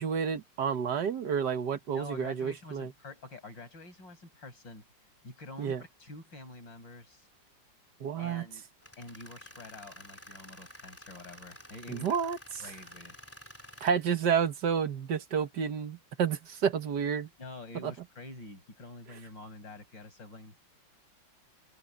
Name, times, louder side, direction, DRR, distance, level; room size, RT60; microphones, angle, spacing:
voice 1, 0.0-2.9 5.6-5.8 8.0-8.5 11.9-12.4 13.8-17.3 17.8-17.9, right 7 dB, 65° right, 1.8 m, -30 dB
voice 2, 1.9-4.9 5.2-7.3 8.2-8.6 9.0-12.2 12.6-13.2 17.4-20.6, left 2 dB, 80° left, 7.5 m, -47 dB
Tools, 8.8-13.9, left 1 dB, 5° left, 3.7 m, -51 dB
omnidirectional pair, 2.0 m